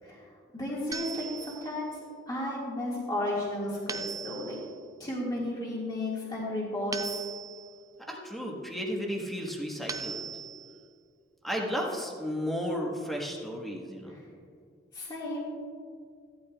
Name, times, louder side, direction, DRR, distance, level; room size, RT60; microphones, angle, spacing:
voice 1, 0.5-1.9 2.3-4.6 5.0-7.2 14.9-15.4, left 1 dB, 20° left, -6 dB, 1.9 m, -33 dB
sound 1, 0.9-1.8 3.9-4.8 6.9-7.8 9.9-10.8, right 6 dB, 20° right, 0.4 m, -39 dB
voice 2, 8.0-10.3 11.4-14.2, equal, ahead, -2 dB, 1.3 m, -33 dB
16.0 x 12.0 x 2.4 m, 2.1 s
head